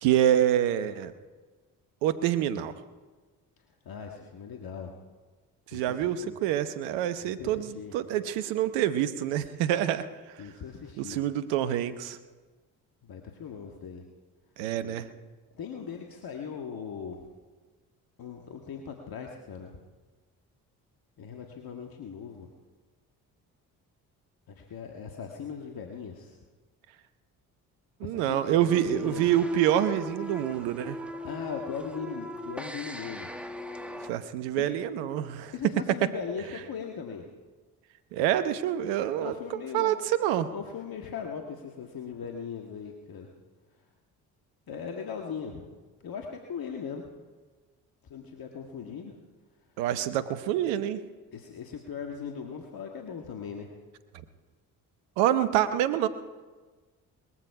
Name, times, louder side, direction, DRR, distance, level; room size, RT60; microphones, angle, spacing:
voice 1, 0.0-1.1 2.0-2.7 5.7-10.1 11.0-12.2 14.6-15.1 28.0-31.0 34.1-35.5 38.1-39.3 39.7-40.5 49.8-51.0 55.2-56.1, right 11 dB, 75° right, 11 dB, 1.1 m, -26 dB
voice 2, 3.8-4.9 5.7-6.4 7.2-7.9 10.4-11.2 13.0-14.0 14.8-15.0 15.5-17.2 18.2-19.8 21.2-22.5 24.5-26.4 28.0-29.3 31.2-33.3 34.6-34.7 35.5-37.2 39.2-40.0 40.5-43.3 44.7-45.7 46.0-47.0 48.0-49.2 51.3-53.7, left 6 dB, 50° left, 1 dB, 1.8 m, -39 dB
sound 1, 28.7-34.1, equal, 5° right, 1.4 m, -40 dB
20.5 x 14.0 x 4.8 m, 1.3 s
hypercardioid pair, 50°, 45 cm